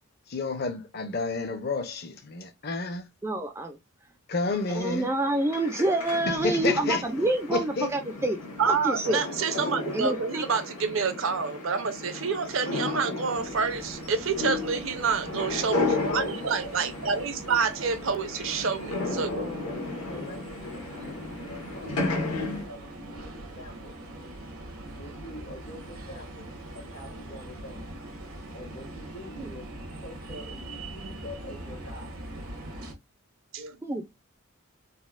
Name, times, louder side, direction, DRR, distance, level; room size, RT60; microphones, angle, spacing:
voice 1, 0.3-3.1 4.3-5.1 6.3-7.0 7.5-7.9, left 3 dB, 45° left, 0.6 m, -30 dB
voice 2, 3.2-3.8 4.7-8.4 8.7-9.2 9.9-10.4 29.4-29.5 33.8-34.0, right 1 dB, 10° right, 0.3 m, -27 dB
sound 1, 4.5-22.6, left 3 dB, 90° left, 1.2 m, -34 dB
voice 3, 8.6-19.5 33.5-33.8, right 5 dB, 65° right, 0.6 m, -28 dB
sound 2, 13.3-32.9, right 1 dB, 85° right, 1.1 m, -42 dB
voice 4, 16.0-17.6 19.3-19.6 20.1-22.2 22.6-23.9 25.0-26.5 26.7-27.9 28.5-32.2, equal, 70° left, 1.6 m, -43 dB
4.1 x 2.0 x 2.3 m
head